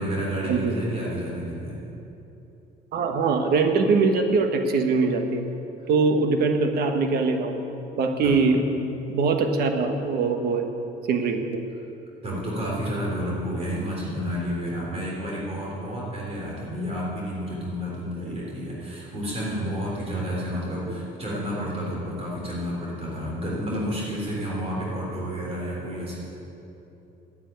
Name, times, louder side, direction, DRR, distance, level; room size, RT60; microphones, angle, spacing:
voice 1, 0.0-1.8 8.2-8.4 12.2-26.2, equal, 35° right, -4 dB, 3.6 m, -30 dB
voice 2, 2.9-5.4 5.9-7.5 8.0-8.6 9.1-10.6 11.1-11.6 20.8-20.9, right 4 dB, 65° right, 5 dB, 1.4 m, -22 dB
10.0 x 9.2 x 9.2 m, 2.9 s
cardioid pair, 110°, 17 cm